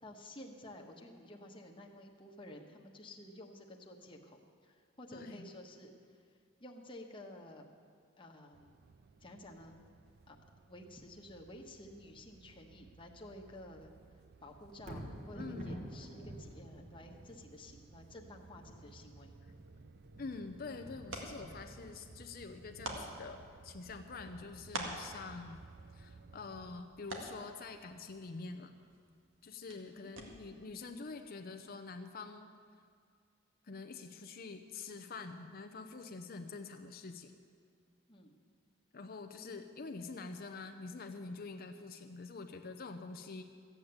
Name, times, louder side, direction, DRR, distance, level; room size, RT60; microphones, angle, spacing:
voice 1, 0.0-6.2 6.6-7.6 8.2-8.7 9.2-9.8 10.3-10.4 10.7-13.9 14.4-19.3 29.9-30.1 38.1-38.3, left 1 dB, 25° left, 1 dB, 1.2 m, -52 dB
voice 2, 5.1-5.5 15.3-15.9 20.2-25.6 25.9-28.7 29.4-32.5 33.6-37.3 38.9-43.4, left 4 dB, 50° left, 6 dB, 0.7 m, -46 dB
sound 1, 8.5-26.8, right 4 dB, 55° right, 0.4 m, -59 dB
Thunder, 14.7-29.0 29.4-29.5, equal, 35° right, 1.5 m, -52 dB
sound 2, 19.9-30.7, right 1 dB, 80° right, 1.9 m, -49 dB
14.5 x 8.7 x 8.0 m, 2.2 s
head